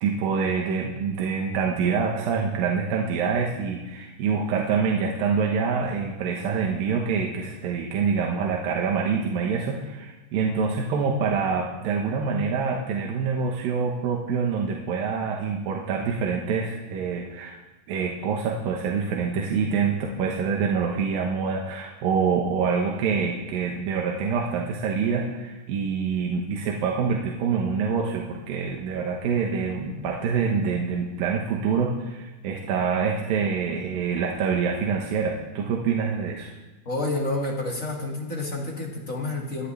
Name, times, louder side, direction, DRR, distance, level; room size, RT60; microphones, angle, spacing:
voice 1, 0.0-17.6 17.9-36.5, right 5 dB, 65° right, 0 dB, 2.6 m, -26 dB
voice 2, 36.8-39.7, left 2 dB, 40° left, -2 dB, 1.2 m, -29 dB
27.0 x 10.5 x 3.4 m, 1.1 s
omnidirectional pair, 5.1 m